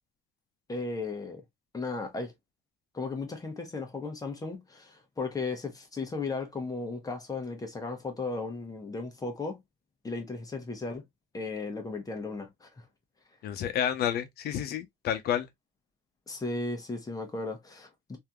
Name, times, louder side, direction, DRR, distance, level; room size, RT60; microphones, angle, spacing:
voice 1, 0.7-1.4 1.7-2.3 2.9-9.6 10.0-11.0 11.3-12.8 16.3-18.2, left 3 dB, 20° left, 1.1 m, -35 dB
voice 2, 13.4-15.5, left 10 dB, 70° left, 0.8 m, -30 dB
3.3 x 2.8 x 2.3 m
cardioid pair, 110°, 17 cm